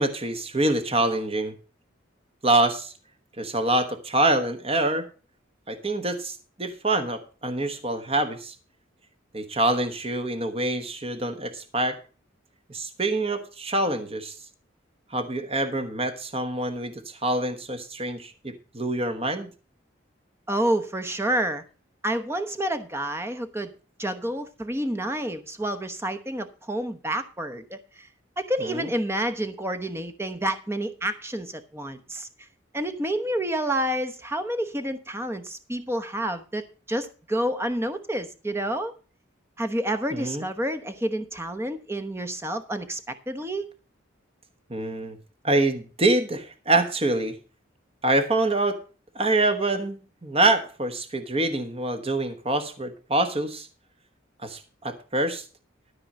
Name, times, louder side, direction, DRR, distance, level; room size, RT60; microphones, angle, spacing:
voice 1, 0.0-1.5 2.4-2.9 3.4-5.1 5.7-8.5 9.3-12.0 12.7-14.3 15.1-19.5 28.6-28.9 40.1-40.4 44.7-45.2 45.4-47.3 48.0-48.8 49.1-53.7 54.4-55.4, right 2 dB, 30° right, 7 dB, 1.2 m, -25 dB
voice 2, 20.5-21.6 22.0-23.7 24.0-28.1 28.4-32.3 32.7-38.9 39.6-43.7, right 1 dB, 10° right, 8 dB, 1.0 m, -29 dB
13.0 x 4.8 x 7.4 m, 0.35 s
head